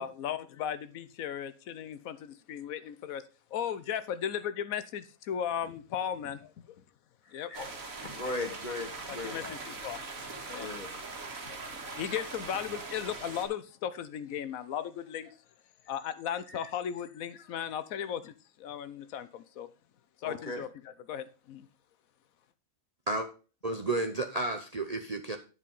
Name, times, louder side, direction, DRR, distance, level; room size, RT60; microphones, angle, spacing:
voice 1, 0.0-3.2 3.5-6.8 7.3-7.5 9.1-10.0 10.5-10.7 11.2-15.4 15.9-19.7 20.2-20.7 21.1-21.7, left 9 dB, 85° left, 1.1 m, -36 dB
sound 1, 7.5-13.5, right 3 dB, 75° right, 2.1 m, -41 dB
voice 2, 8.0-9.6 10.6-10.9 20.2-20.6, left 2 dB, 35° left, 1.8 m, -37 dB
voice 3, 23.6-25.4, right 2 dB, 40° right, 0.6 m, -32 dB
10.0 x 4.9 x 5.4 m
omnidirectional pair, 1.4 m